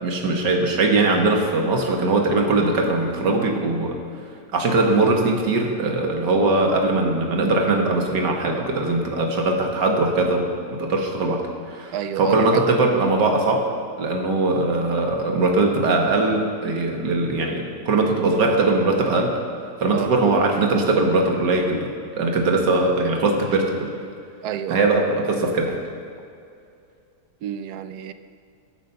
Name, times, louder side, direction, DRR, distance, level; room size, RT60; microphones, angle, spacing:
voice 1, 0.0-3.9 4.5-10.5 10.8-11.4 11.7-13.6 14.0-19.4 19.8-21.9 22.2-23.9 24.7-25.8, right 2 dB, 90° right, 2 dB, 2.1 m, -20 dB
voice 2, 11.9-12.8 19.9-20.1 24.4-24.9 27.4-28.1, right 10 dB, 70° right, 11 dB, 1.2 m, -29 dB
22.0 x 7.6 x 5.7 m, 2.4 s
omnidirectional pair, 1.8 m